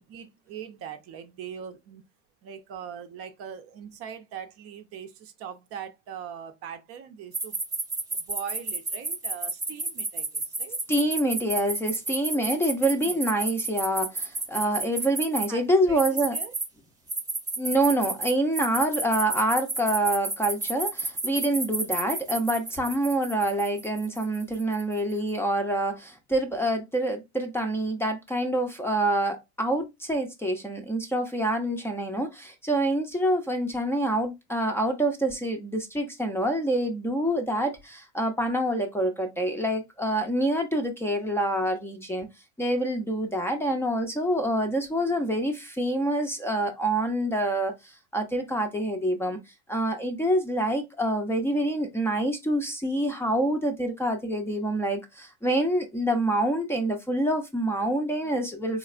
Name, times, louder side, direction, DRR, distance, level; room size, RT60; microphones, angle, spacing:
voice 1, 0.0-2.0 2.4-7.6 8.1-10.8 12.3-12.6 12.8-13.2 15.5-16.5, right 8 dB, 40° right, 0.6 m, -41 dB
sound 1, 7.3-15.5 16.0-16.7 17.1-24.9, right 3 dB, 10° right, 1.0 m, -31 dB
voice 2, 10.9-16.3 17.6-42.3 42.6-49.4 49.7-58.8, right 1 dB, 5° left, 0.6 m, -26 dB
4.0 x 3.1 x 2.4 m
supercardioid pair, 110°, 35 cm